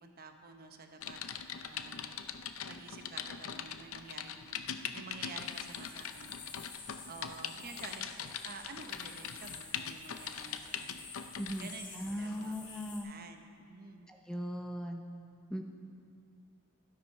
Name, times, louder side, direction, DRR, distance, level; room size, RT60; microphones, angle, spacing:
voice 1, 0.0-1.2 1.5-2.2 2.7-4.6 4.9-6.3 7.1-11.1 11.6-13.4 13.7-14.1, right 4 dB, 45° right, 5 dB, 0.9 m, -50 dB
Typing, 1.0-11.7 12.3-12.5, left 8 dB, 70° left, 0.6 m, -42 dB
sound 1, 5.4-13.0, left 4 dB, 55° left, 3.1 m, -51 dB
voice 2, 11.4-13.1 14.1-15.0 15.5-15.6, equal, 5° left, 3 dB, 0.7 m, -39 dB
12.0 x 12.0 x 5.4 m, 2.3 s
head